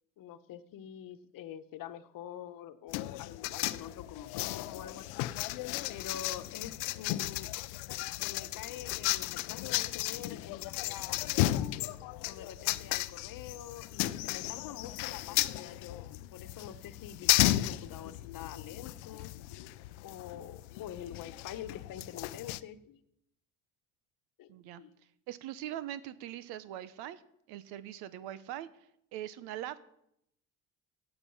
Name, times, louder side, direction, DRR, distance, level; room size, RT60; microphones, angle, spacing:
voice 1, 0.2-5.3 5.9-7.5 8.2-11.8 12.3-19.3 20.0-23.0 24.4-24.5 24.8-24.9, left 10 dB, 60° left, 11 dB, 1.1 m, -46 dB
sound 1, 2.9-22.6, left 17 dB, 85° left, 0.6 m, -34 dB
voice 2, 24.5-24.8 25.3-27.2 27.5-28.7 29.1-29.9, right 12 dB, 80° right, 14 dB, 1.0 m, -41 dB
16.0 x 8.5 x 5.7 m, 0.77 s
supercardioid pair, 85°, 38 cm